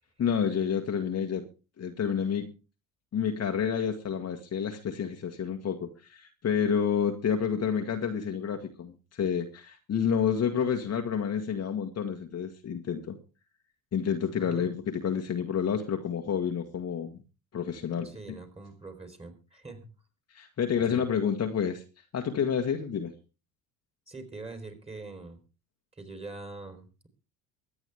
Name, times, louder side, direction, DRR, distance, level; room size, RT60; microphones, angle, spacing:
voice 1, 0.2-1.4 1.8-2.5 3.1-13.2 13.9-17.2 17.5-18.1 20.3-21.8 22.1-23.1, left 7 dB, 35° left, 4 dB, 1.7 m, -29 dB
voice 2, 14.4-14.7 18.0-19.9 20.8-21.1 24.1-25.4 26.0-27.1, right 3 dB, 15° right, 7 dB, 3.9 m, -43 dB
23.5 x 8.8 x 3.5 m, 0.33 s
figure-of-eight pair, 65°, 45 cm